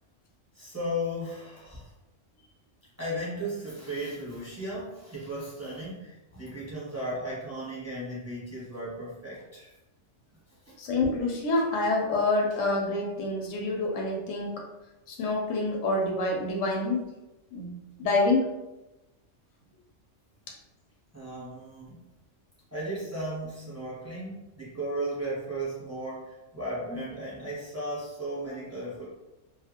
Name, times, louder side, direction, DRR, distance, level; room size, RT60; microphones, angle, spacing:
voice 1, 0.5-1.9 3.0-9.7 10.6-10.8 21.1-22.0 22.7-29.1, right 1 dB, 15° right, -8 dB, 0.9 m, -35 dB
voice 2, 10.8-14.6 15.1-17.1 17.5-17.7 18.0-18.5, left 2 dB, 80° left, 0 dB, 1.0 m, -27 dB
2.5 x 2.4 x 2.8 m, 1.0 s
omnidirectional pair, 1.3 m